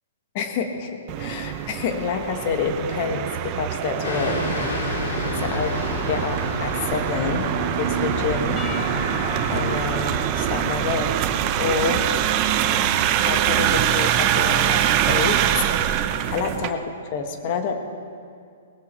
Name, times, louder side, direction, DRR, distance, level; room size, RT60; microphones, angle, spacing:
voice 1, 0.3-4.4 4.9-5.0 5.4-5.7 6.1-8.6 9.0-9.1 9.5-11.2 11.6-12.1 13.2-15.6 16.3-16.8 17.1-17.7, left 5 dB, 40° left, 5 dB, 1.4 m, -28 dB
sound 1, 1.1-16.7, right 10 dB, 30° right, 0.6 m, -24 dB
sound 2, 4.0-10.2, left 1 dB, 70° left, 4.0 m, -30 dB
Percussion / Church bell, 8.6-12.2, left 5 dB, 15° left, 0.8 m, -38 dB
19.0 x 14.0 x 4.4 m, 2.3 s
hypercardioid pair, 160°, 0 cm